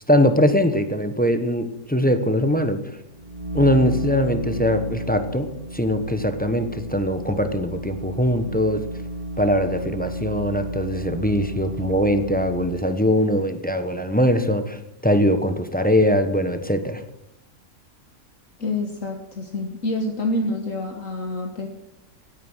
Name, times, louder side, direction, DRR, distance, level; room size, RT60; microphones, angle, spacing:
voice 1, 0.1-3.0 3.5-8.8 9.4-17.0, equal, 5° left, 8 dB, 0.9 m, -21 dB
sound 1, 3.1-13.0, right 1 dB, 30° right, 1.1 m, -32 dB
voice 2, 18.6-21.7, left 2 dB, 60° left, 3 dB, 1.8 m, -27 dB
16.5 x 9.2 x 6.3 m, 0.81 s
omnidirectional pair, 1.5 m